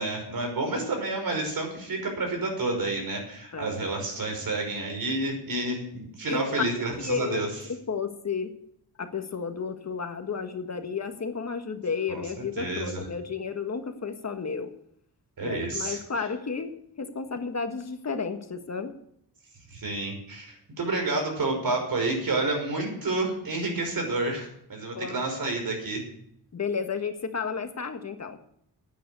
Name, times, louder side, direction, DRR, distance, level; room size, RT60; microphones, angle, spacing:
voice 1, 0.0-7.6 12.1-13.1 15.4-16.0 19.7-26.0, right 2 dB, 60° right, 3 dB, 5.7 m, -29 dB
voice 2, 7.0-7.4 7.9-8.5 9.0-14.7 15.4-18.9 24.9-25.2 26.5-28.4, left 5 dB, 40° left, 6 dB, 1.6 m, -32 dB
11.0 x 9.4 x 9.3 m, 0.71 s
cardioid pair, 100°, 39 cm